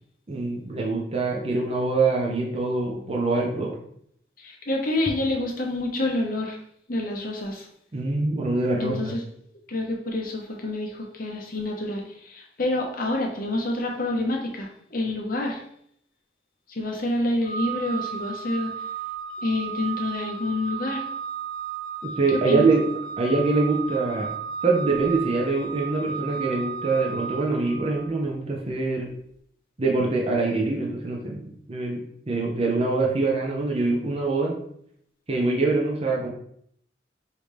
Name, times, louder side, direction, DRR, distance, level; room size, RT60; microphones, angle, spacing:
voice 1, 0.3-3.8 7.9-9.1 22.0-22.9 23.2-24.3 24.6-29.1 29.8-34.6 35.3-36.3, right 3 dB, 35° right, -1 dB, 0.7 m, -24 dB
voice 2, 4.4-6.6 6.9-7.7 8.8-9.2 9.7-15.6 16.7-18.7 19.4-21.0 22.5-22.7, left 2 dB, 50° left, 0 dB, 0.9 m, -28 dB
Organ, 17.4-28.2, right 7 dB, 20° left, 1.5 m, -34 dB
5.0 x 2.8 x 3.2 m, 0.68 s
head